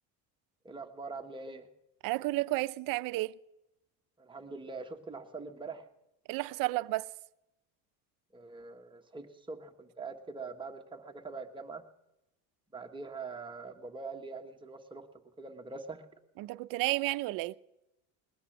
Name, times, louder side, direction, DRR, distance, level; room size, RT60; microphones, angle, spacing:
voice 1, 0.6-1.7 4.2-5.8 8.3-11.8 12.7-15.1 15.4-16.0, right 4 dB, 15° right, 1.3 m, -43 dB
voice 2, 2.0-3.3 6.3-7.1 16.4-17.6, right 20 dB, 60° right, 0.6 m, -32 dB
20.5 x 9.7 x 7.2 m
cardioid pair, 145°, 38 cm